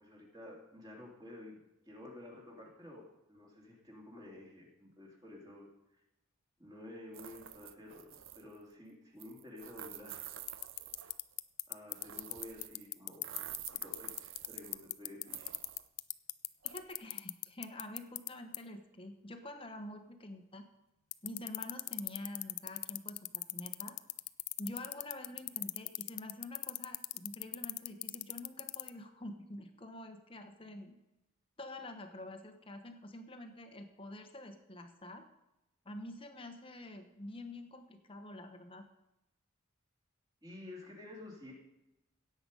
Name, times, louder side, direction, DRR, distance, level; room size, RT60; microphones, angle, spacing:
voice 1, 0.0-1.6 1.9-3.0 3.3-6.0 6.6-10.3 11.7-13.2 13.7-15.5 40.4-41.5, left 1 dB, 20° right, -2 dB, 2.9 m, -51 dB
sound 1, 7.1-8.6 9.2-11.3 11.9-12.9 13.1-14.9 15.3-15.9 16.6-16.9, right 11 dB, 60° right, 0.6 m, -49 dB
sound 2, 10.5-18.3 18.5-18.6 21.1-28.9, left 21 dB, 85° left, 0.5 m, -36 dB
voice 2, 16.6-20.7 21.2-24.0 24.6-31.0 31.6-35.3 35.8-38.8, left 1 dB, 25° left, 7 dB, 1.2 m, -47 dB
16.5 x 8.0 x 5.4 m, 0.93 s
head